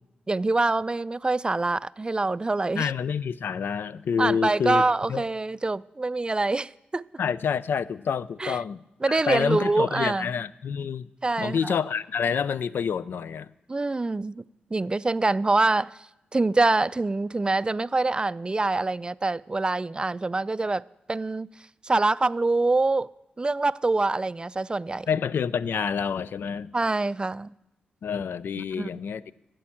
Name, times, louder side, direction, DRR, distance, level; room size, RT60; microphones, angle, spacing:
voice 1, 0.3-2.9 4.2-7.0 8.4-8.6 9.0-10.3 11.2-11.7 13.7-14.4 14.7-16.0 16.3-20.8 21.1-21.5 21.8-23.1 23.4-25.1 26.7-27.5 28.6-28.9, right 3 dB, 25° right, 0.3 m, -25 dB
voice 2, 2.7-4.8 5.1-5.2 7.2-8.8 9.1-11.1 11.4-13.5 25.1-26.7 28.0-29.3, left 7 dB, 70° left, 0.4 m, -28 dB
11.5 x 7.7 x 8.5 m
cardioid pair, 50°, 4 cm